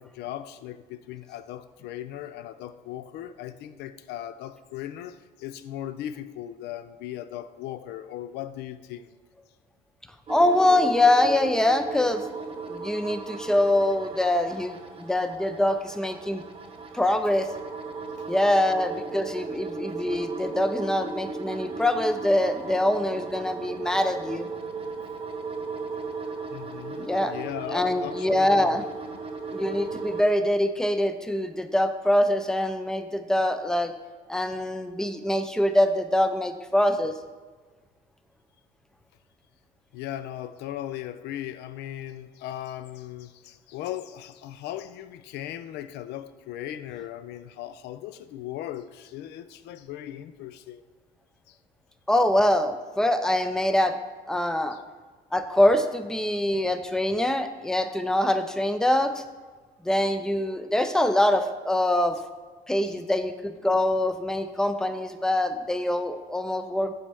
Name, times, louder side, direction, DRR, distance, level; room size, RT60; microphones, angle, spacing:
voice 1, 0.0-9.1 18.1-18.3 26.5-28.8 29.1-29.2 39.9-50.8 51.5-51.6 54.7-54.8 62.9-63.0, left 12 dB, 80° left, 12 dB, 0.4 m, -38 dB
voice 2, 10.3-12.2 12.7-16.4 16.9-17.5 18.3-24.5 27.0-27.3 27.7-28.8 29.5-33.9 34.3-37.1 52.1-54.0 54.3-54.8 55.3-59.2 59.8-62.2 62.7-66.9, left 1 dB, 5° left, 9 dB, 0.4 m, -24 dB
sound 1, 10.3-30.2, right 4 dB, 35° right, 0.7 m, -36 dB
8.3 x 4.1 x 3.4 m, 1.3 s
cardioid pair, 110°, 17 cm